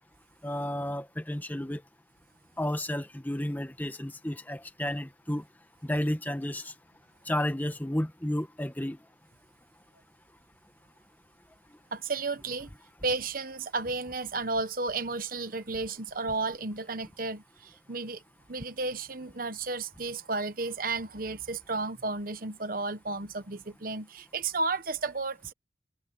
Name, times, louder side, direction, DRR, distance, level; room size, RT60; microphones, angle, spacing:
voice 1, 0.4-1.8 2.6-5.4 5.8-6.7 7.2-9.0, left 1 dB, 10° left, 1.2 m, -32 dB
voice 2, 11.9-12.7 13.0-18.2 18.5-25.5, right 3 dB, 50° right, 1.2 m, -33 dB
head